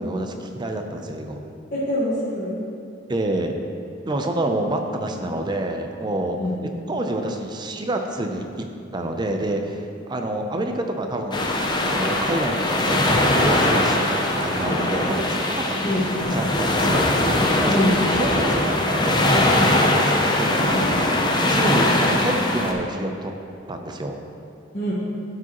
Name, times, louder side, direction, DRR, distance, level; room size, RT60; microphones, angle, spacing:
voice 1, 0.0-1.4 3.1-3.5 4.1-6.4 6.9-8.6 8.9-11.6 11.9-16.0 16.3-23.3 23.7-24.2, right 1 dB, 25° right, 4 dB, 0.5 m, -28 dB
voice 2, 1.7-2.5 6.3-6.6 15.8-16.4 17.6-18.0 24.7-24.9, left 1 dB, 40° left, -10 dB, 1.5 m, -24 dB
sound 1, 11.3-22.7, left 1 dB, 25° left, 0.6 m, -21 dB
12.0 x 4.9 x 3.0 m, 2.6 s
head